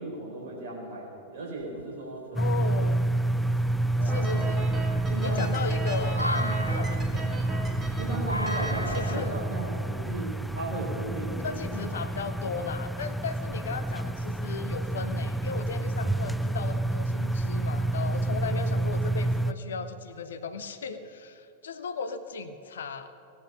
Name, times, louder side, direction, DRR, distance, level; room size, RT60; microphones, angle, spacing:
voice 1, 0.0-2.6 3.1-3.3 4.0-4.3 5.1-5.5 6.3-6.6 8.0-11.8, right 2 dB, 55° right, -2 dB, 4.2 m, -37 dB
sound 1, 1.6-2.2 2.8-2.9 3.4-11.5, equal, 90° left, 0.4 m, -37 dB
sound 2, 2.3-19.5, right 2 dB, ahead, 0.4 m, -29 dB
voice 2, 2.4-3.1 4.0-4.7 5.2-7.4 8.9-9.4 11.4-23.1, left 5 dB, 65° left, 10 dB, 0.8 m, -36 dB
sound 3, 4.1-9.2, right 2 dB, 20° right, 1.8 m, -38 dB
18.0 x 9.6 x 5.7 m, 2.7 s
figure-of-eight pair, 90°, 0 cm